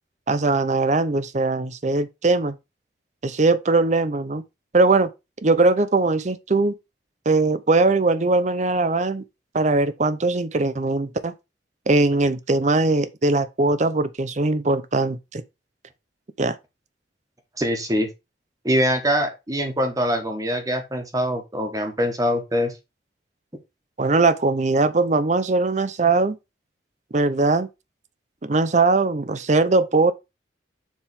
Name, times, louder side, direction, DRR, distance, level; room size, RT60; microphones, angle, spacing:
voice 1, 0.3-2.6 3.2-4.4 4.7-5.1 5.4-6.7 7.3-9.2 9.5-11.3 11.9-15.4 16.4-16.6 24.0-26.4 27.1-27.7 28.4-30.1, right 3 dB, 40° right, 0.6 m, -20 dB
voice 2, 17.6-18.1 18.6-22.7, equal, 20° right, 1.4 m, -23 dB
7.2 x 3.6 x 4.7 m
head